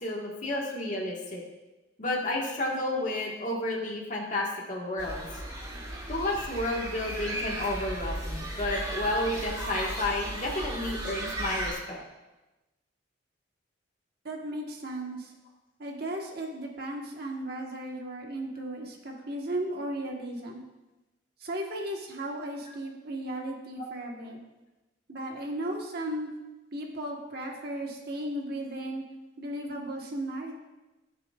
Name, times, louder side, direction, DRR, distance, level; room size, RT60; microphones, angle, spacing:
voice 1, 0.0-1.4 2.0-5.2 6.1-12.0 23.8-23.9, left 1 dB, 40° left, -3 dB, 1.6 m, -31 dB
sound 1, 5.0-11.7, right 1 dB, 25° right, 2.5 m, -35 dB
voice 2, 14.2-15.3 15.8-20.6 21.4-24.4 25.1-26.3 26.7-29.0 29.4-30.5, right 1 dB, 55° right, 0 dB, 1.3 m, -35 dB
16.0 x 6.8 x 2.4 m, 1.1 s
head